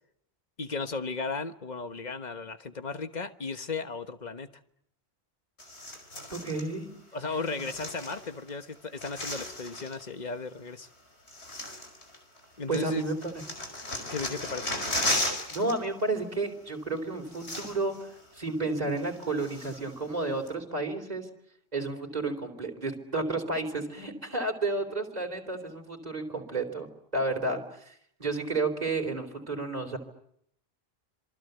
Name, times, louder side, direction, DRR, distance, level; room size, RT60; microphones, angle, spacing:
voice 1, 0.6-4.5 7.1-10.9 12.6-13.0 14.0-14.7, left 4 dB, 45° left, 10 dB, 1.4 m, -35 dB
sound 1, 5.6-6.7 7.4-8.5 8.8-10.0 10.8-10.9 11.3-12.5 12.7-16.2 17.0-17.1 17.3-18.0 18.4-18.5 19.0-19.9 20.5-20.6, left 1 dB, 80° left, 5.3 m, -35 dB
voice 2, 6.3-6.9 7.3-7.7 12.7-13.3 15.5-21.3 21.7-26.9 27.1-27.9 28.2-30.0, right 2 dB, 40° right, 3 dB, 3.8 m, -31 dB
27.0 x 24.0 x 8.1 m, 0.73 s
omnidirectional pair, 1.1 m